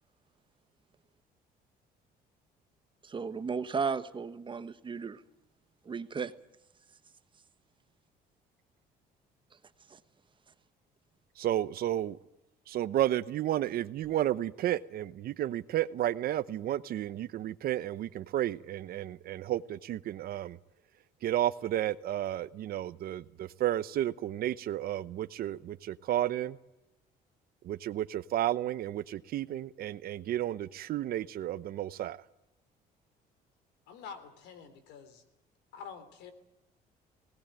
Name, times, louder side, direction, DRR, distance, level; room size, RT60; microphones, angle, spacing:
voice 1, 3.0-5.2 5.8-6.3 9.9-10.0, right 5 dB, 30° right, 12 dB, 1.2 m, -34 dB
voice 2, 11.4-12.2 12.7-20.6 21.2-26.6 27.6-32.2, right 12 dB, 65° right, 15 dB, 0.9 m, -32 dB
voice 3, 33.9-35.2 35.7-36.3, left 6 dB, 90° left, 11 dB, 3.5 m, -47 dB
19.5 x 19.5 x 9.0 m, 0.92 s
cardioid pair, 110°, 17 cm